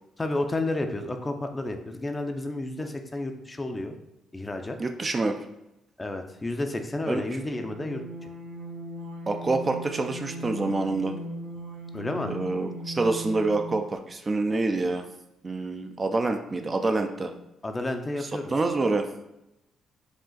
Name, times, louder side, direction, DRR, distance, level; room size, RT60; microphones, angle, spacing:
voice 1, 0.2-3.9 4.3-4.8 6.0-8.3 11.9-12.3 17.6-18.5, left 2 dB, 20° left, 5 dB, 0.5 m, -31 dB
voice 2, 4.8-5.4 7.1-7.2 9.3-11.1 12.3-15.1 15.4-17.3 18.2-19.1, right 3 dB, 30° right, 5 dB, 0.4 m, -27 dB
sound 1, 7.2-14.0, right 1 dB, 70° right, 0.7 m, -39 dB
5.0 x 2.4 x 3.8 m, 0.91 s
cardioid pair, 90°, 0 cm